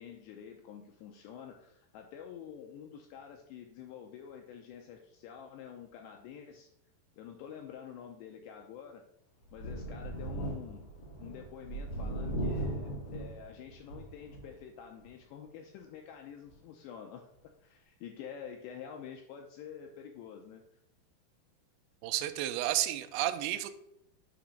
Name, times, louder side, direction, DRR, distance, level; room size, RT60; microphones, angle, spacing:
voice 1, 0.0-6.7 7.2-9.0 9.5-10.9 11.2-17.3 17.6-20.8, left 8 dB, 85° left, 3 dB, 2.4 m, -48 dB
Thunder, 9.5-14.6 15.0-15.1 16.5-16.6, right 1 dB, 55° left, 1.8 m, -38 dB
voice 2, 22.0-23.7, right 14 dB, 85° right, 7 dB, 2.5 m, -31 dB
8.8 x 3.0 x 6.4 m, 0.75 s
omnidirectional pair, 5.5 m